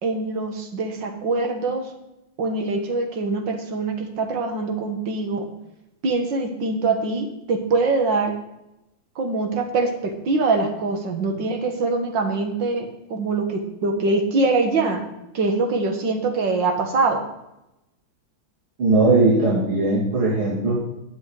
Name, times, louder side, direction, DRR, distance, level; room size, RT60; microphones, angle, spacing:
voice 1, 0.0-1.9 2.4-5.5 6.0-8.3 9.2-15.1 15.3-17.2, right 3 dB, 65° right, 5 dB, 2.2 m, -23 dB
voice 2, 18.8-20.8, right 2 dB, 90° right, -7 dB, 3.9 m, -19 dB
11.0 x 8.4 x 4.9 m, 0.89 s
omnidirectional pair, 2.2 m